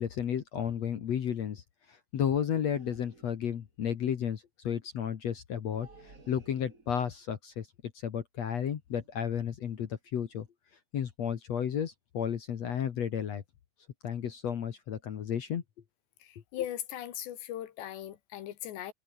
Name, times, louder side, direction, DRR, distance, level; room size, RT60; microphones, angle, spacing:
voice 1, 0.0-1.6 2.1-5.9 6.3-7.7 8.0-10.5 10.9-13.4 14.0-15.6, left 8 dB, 60° left, 1.8 m, -32 dB
sound 1, 2.7-3.6 5.6-7.2 8.9-9.2 9.6-9.9 10.3-10.5, right 3 dB, 20° right, 3.3 m, -57 dB
voice 2, 16.2-18.9, left 12 dB, 75° left, 3.8 m, -39 dB
omnidirectional pair, 5.1 m